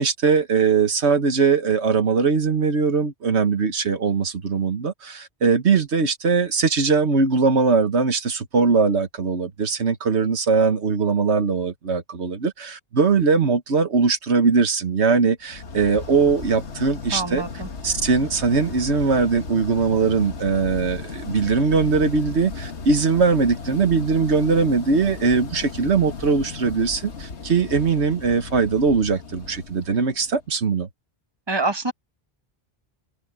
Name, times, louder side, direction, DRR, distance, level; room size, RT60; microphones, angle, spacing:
voice 1, 0.0-17.4 17.8-30.9, right 4 dB, 90° right, 1.7 m, -20 dB
sound 1, 15.5-30.5, left 4 dB, 90° left, 1.7 m, -36 dB
voice 2, 17.1-17.7 31.5-31.9, right 2 dB, 25° right, 1.2 m, -25 dB
open air
omnidirectional pair, 1.1 m